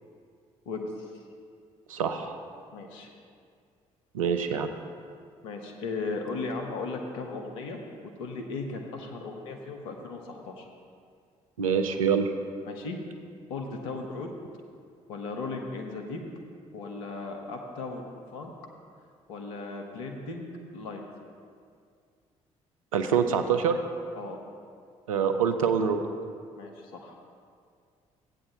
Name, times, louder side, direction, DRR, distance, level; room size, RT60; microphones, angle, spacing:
voice 1, 0.7-1.2 2.7-3.1 5.4-7.8 8.2-10.7 12.6-13.0 13.5-14.3 15.1-16.2 16.7-18.5 19.3-20.5 20.7-21.0 24.2-24.4 26.6-27.2, left 3 dB, 80° left, 3 dB, 1.0 m, -36 dB
voice 2, 1.9-2.4 4.1-4.7 11.6-12.3 22.9-23.8 25.1-26.1, right 7 dB, 90° right, 7 dB, 0.5 m, -25 dB
14.5 x 8.7 x 2.8 m, 2.2 s
hypercardioid pair, 45°, 17 cm